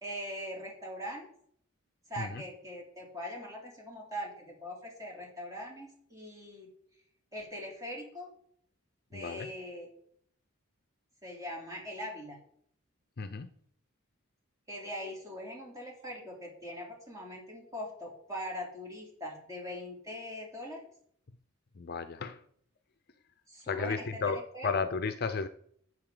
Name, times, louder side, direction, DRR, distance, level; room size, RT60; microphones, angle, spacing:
voice 1, 0.0-1.3 2.1-6.7 7.3-8.3 9.1-9.9 11.2-12.4 14.7-20.9 23.5-24.7, equal, 15° right, -2 dB, 3.2 m, -41 dB
voice 2, 9.1-9.5 13.2-13.5 21.8-22.4 23.7-25.5, left 5 dB, 45° left, 10 dB, 0.5 m, -33 dB
11.5 x 8.1 x 3.9 m, 0.63 s
head